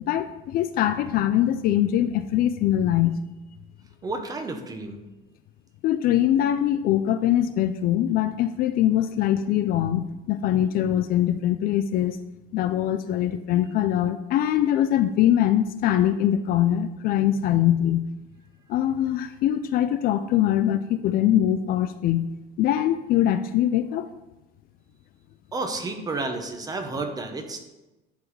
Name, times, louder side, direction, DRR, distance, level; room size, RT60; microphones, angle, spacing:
voice 1, 0.0-3.1 5.8-12.2 12.5-18.1 18.7-22.3 22.6-24.1, left 11 dB, 50° left, 11 dB, 0.4 m, -22 dB
voice 2, 4.0-5.0 25.5-27.6, right 3 dB, 20° right, 5 dB, 0.8 m, -31 dB
10.5 x 4.0 x 4.7 m, 1.0 s
cardioid pair, 155°, 20 cm